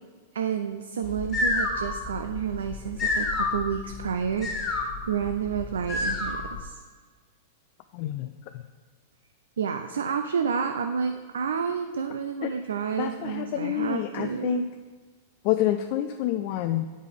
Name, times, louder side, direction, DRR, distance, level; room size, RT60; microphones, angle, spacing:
voice 1, 0.3-6.8 9.6-14.7, right 7 dB, 75° right, 7 dB, 0.4 m, -30 dB
sound 1, 1.0-6.6, left 3 dB, 25° left, 1.6 m, -29 dB
voice 2, 7.9-8.6 12.4-12.5 13.0-14.7 15.4-16.9, left 13 dB, 50° left, 6 dB, 0.3 m, -28 dB
8.9 x 5.1 x 3.6 m, 1.4 s
hypercardioid pair, 100°, 0 cm